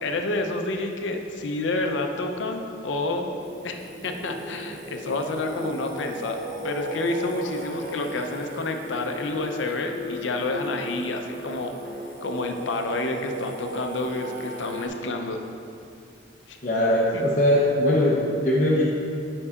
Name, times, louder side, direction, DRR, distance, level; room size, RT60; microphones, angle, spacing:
voice 1, 0.0-3.3 3.6-3.8 4.0-6.4 6.6-11.7 12.2-15.4 16.5-16.6 17.1-17.2, left 2 dB, 85° left, 4 dB, 0.6 m, -29 dB
Singing, 3.4-14.9, right 1 dB, 45° right, 0.7 m, -36 dB
voice 2, 16.6-18.8, left 1 dB, 45° left, -6 dB, 0.7 m, -21 dB
9.6 x 5.4 x 2.4 m, 2.5 s
head